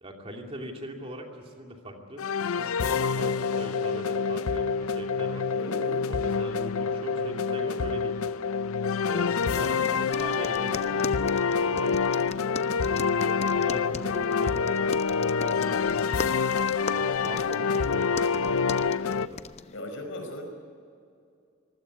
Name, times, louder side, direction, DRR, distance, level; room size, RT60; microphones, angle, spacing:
voice 1, 0.0-5.5 6.1-8.2 9.1-11.2 11.5-12.0 12.8-16.2 16.9-19.4, equal, 25° right, 2 dB, 2.6 m, -41 dB
sound 1, 2.2-19.3, left 5 dB, 85° left, 0.6 m, -27 dB
voice 2, 5.6-6.0 9.0-9.5 19.7-20.5, left 1 dB, 65° left, 4 dB, 5.4 m, -38 dB
sound 2, 9.4-19.8, left 4 dB, 30° left, 0.6 m, -40 dB
25.0 x 16.0 x 9.8 m, 2.4 s
head